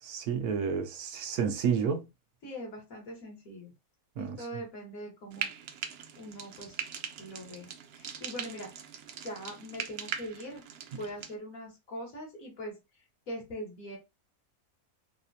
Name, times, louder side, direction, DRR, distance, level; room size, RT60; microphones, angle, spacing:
voice 1, 0.0-2.1 4.2-4.6 10.9-11.0, right 6 dB, 85° right, 1.2 m, -31 dB
voice 2, 2.4-3.7 4.2-5.5 6.2-6.8 7.2-8.7 9.2-10.6 11.0-12.8 13.3-14.0, equal, 65° left, 2.0 m, -42 dB
Frying (food), 5.3-11.3, right 8 dB, 70° right, 0.6 m, -41 dB
4.1 x 2.3 x 2.7 m
omnidirectional pair, 1.5 m